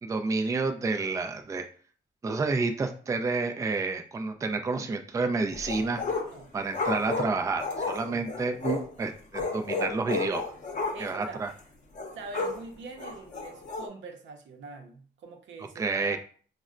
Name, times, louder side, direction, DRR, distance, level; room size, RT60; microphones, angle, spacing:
voice 1, 0.0-1.7 2.2-6.0 6.5-10.5 11.0-11.5 15.8-16.2, right 3 dB, 15° right, 6 dB, 0.3 m, -29 dB
sound 1, 5.5-6.4 6.7-8.9 9.3-11.2 11.5-11.6 12.0-12.6 13.0-13.9, left 3 dB, 40° left, 0.8 m, -32 dB
voice 2, 8.1-8.4 10.9-11.5 12.1-16.2, right 3 dB, 70° right, 4 dB, 0.6 m, -44 dB
4.1 x 2.1 x 2.4 m, 0.44 s
cardioid pair, 90°, 20 cm